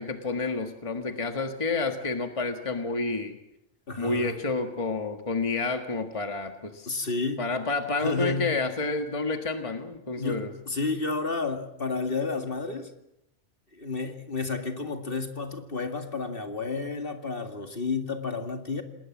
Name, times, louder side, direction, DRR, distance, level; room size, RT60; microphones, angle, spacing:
voice 1, 0.0-3.4 4.0-7.1 7.4-10.5, left 3 dB, 25° left, 6 dB, 1.6 m, -29 dB
voice 2, 3.9-4.4 6.9-7.4 8.0-8.5 10.2-12.9 13.7-18.8, left 3 dB, 50° left, 6 dB, 2.3 m, -31 dB
28.0 x 19.5 x 7.4 m, 0.82 s
omnidirectional pair, 1.2 m